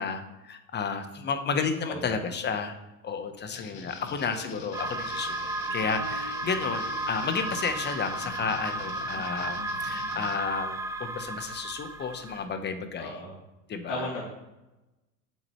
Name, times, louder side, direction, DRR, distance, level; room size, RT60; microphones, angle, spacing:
voice 1, 0.0-2.7 3.0-13.2 13.7-14.1, left 5 dB, 25° left, 8 dB, 1.0 m, -32 dB
sound 1, 3.5-10.4, left 5 dB, 55° left, 1.4 m, -44 dB
Guitar, 4.1-10.8, right 3 dB, 50° right, 2.1 m, -50 dB
sound 2, 4.7-12.4, right 2 dB, 10° right, 0.3 m, -34 dB
voice 2, 13.0-13.3 13.9-14.2, left 2 dB, 70° left, -8 dB, 3.0 m, -34 dB
7.7 x 7.5 x 3.2 m, 1.0 s
hypercardioid pair, 100°, 41 cm